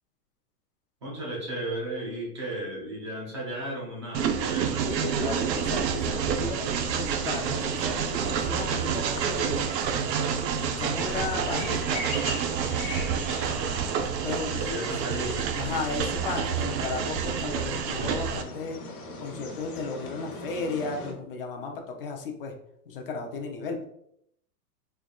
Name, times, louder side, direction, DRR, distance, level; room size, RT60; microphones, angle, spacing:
voice 1, 1.0-5.0 13.2-13.8 14.4-15.5, right 1 dB, 20° right, -4 dB, 0.4 m, -35 dB
Train, 4.1-18.4, right 7 dB, 90° right, 0.7 m, -28 dB
voice 2, 4.8-9.7 10.6-12.1 14.2-15.1 15.6-18.8 19.2-22.5 22.9-23.8, left 4 dB, 35° left, 2 dB, 0.5 m, -34 dB
sound 1, 6.9-21.1, left 2 dB, 60° left, 1.3 m, -41 dB
3.8 x 3.4 x 2.3 m, 0.72 s
hypercardioid pair, 160°, 49 cm